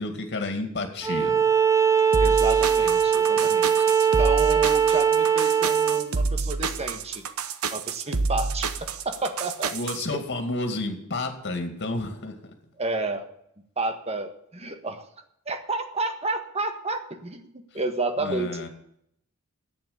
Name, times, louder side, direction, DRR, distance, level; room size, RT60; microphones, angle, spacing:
voice 1, 0.0-1.4 2.8-2.9 3.4-3.5 9.7-12.4 18.2-18.7, left 2 dB, 50° left, 5 dB, 2.4 m, -31 dB
Bowed string instrument, 1.0-6.1, right 7 dB, 15° right, 0.8 m, -21 dB
sound 1, 2.1-10.0, right 4 dB, 85° right, 0.9 m, -28 dB
voice 2, 2.2-3.9 4.2-7.2 7.7-9.7 10.1-10.2 12.8-13.2 13.8-15.0 15.5-17.5 17.7-18.7, right 2 dB, 30° right, 7 dB, 1.5 m, -31 dB
10.5 x 9.0 x 8.6 m, 0.74 s
head